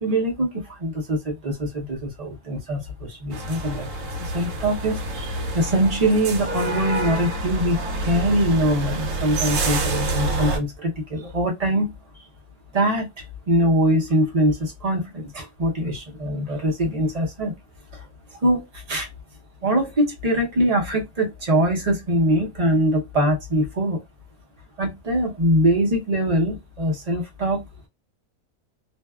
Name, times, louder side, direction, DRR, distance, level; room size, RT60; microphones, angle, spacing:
voice 1, 0.0-3.9 4.2-12.3 12.7-17.5 17.9-19.1 19.6-24.0 24.8-27.7, right 1 dB, 40° right, 0.6 m, -23 dB
sound 1, 3.3-10.6, right 2 dB, 65° right, 0.9 m, -27 dB
2.6 x 2.2 x 2.2 m
omnidirectional pair, 1.6 m